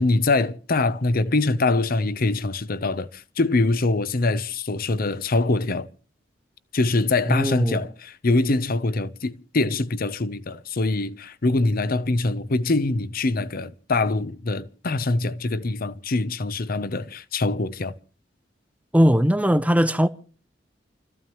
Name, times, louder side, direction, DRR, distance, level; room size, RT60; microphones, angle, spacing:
voice 1, 0.0-5.9 6.7-17.9, left 2 dB, 50° left, 0.8 m, -24 dB
voice 2, 7.3-7.8 18.9-20.1, equal, 10° right, 0.7 m, -19 dB
29.0 x 14.5 x 3.0 m
head